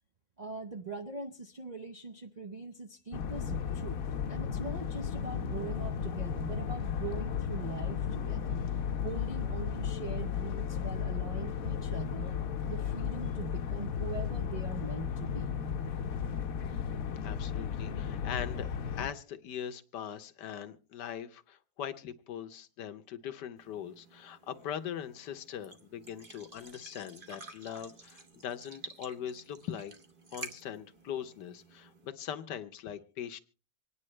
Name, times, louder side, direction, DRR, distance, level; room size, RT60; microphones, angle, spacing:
voice 1, 0.4-4.0 4.3-8.6 9.0-12.4 12.7-15.5, right 4 dB, 50° right, 0 dB, 0.5 m, -42 dB
sound 1, 3.1-19.1, left 7 dB, 60° left, 1.1 m, -34 dB
voice 2, 17.2-18.7 19.0-29.9 30.3-33.4, left 9 dB, 80° left, 9 dB, 1.4 m, -41 dB
sound 2, 23.6-32.1, right 3 dB, 35° right, 1.1 m, -51 dB
25.5 x 9.8 x 3.2 m, 0.37 s
omnidirectional pair, 1.8 m